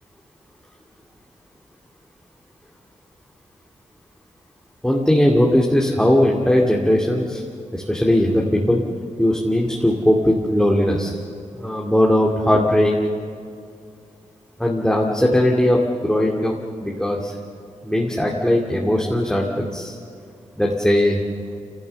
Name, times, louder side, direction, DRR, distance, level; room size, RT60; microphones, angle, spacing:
voice 1, 4.8-7.4 7.7-8.8 9.2-11.2 11.5-12.9 14.6-17.4 17.8-19.9 20.6-21.2, left 1 dB, 5° left, -3 dB, 2.3 m, -19 dB
28.0 x 17.5 x 7.0 m, 2.3 s
wide cardioid pair, 85°, 13 cm